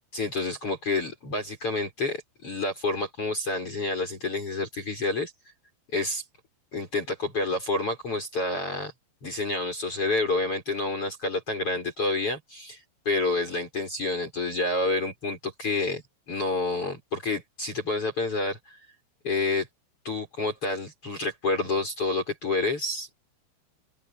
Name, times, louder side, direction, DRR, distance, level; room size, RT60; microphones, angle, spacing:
voice 1, 0.1-5.3 5.9-6.2 6.7-8.9 9.2-16.0 16.3-18.8 19.2-19.7 20.1-23.2, left 3 dB, 30° left, 6.9 m, -29 dB
open air
omnidirectional pair, 5.3 m